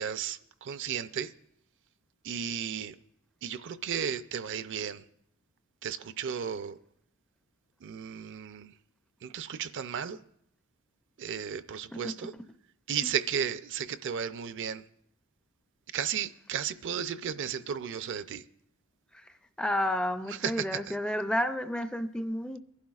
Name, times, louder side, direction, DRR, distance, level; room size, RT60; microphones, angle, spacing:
voice 1, 0.0-1.3 2.2-3.0 3.4-5.0 5.8-6.8 7.8-8.7 9.2-10.2 11.2-12.3 12.9-14.8 15.9-18.4 20.3-21.0, right 8 dB, 55° right, 0.4 m, -34 dB
voice 2, 19.6-22.6, left 1 dB, 5° left, 0.4 m, -31 dB
23.5 x 11.5 x 2.4 m
head